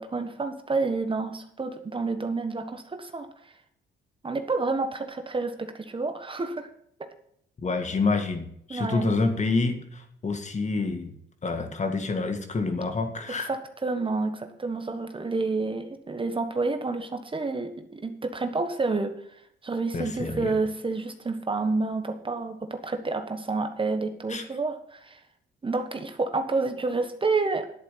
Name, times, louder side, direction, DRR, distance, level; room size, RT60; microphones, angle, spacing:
voice 1, 0.0-3.3 4.2-6.7 8.7-9.1 13.5-19.1 19.6-25.2 25.6-27.7, right 3 dB, 25° right, 7 dB, 1.3 m, -29 dB
voice 2, 7.6-11.1 11.4-13.5 19.9-20.6 24.3-24.4, left 3 dB, 35° left, 6 dB, 2.0 m, -28 dB
10.5 x 8.3 x 5.8 m, 0.69 s
cardioid pair, 90°, 20 cm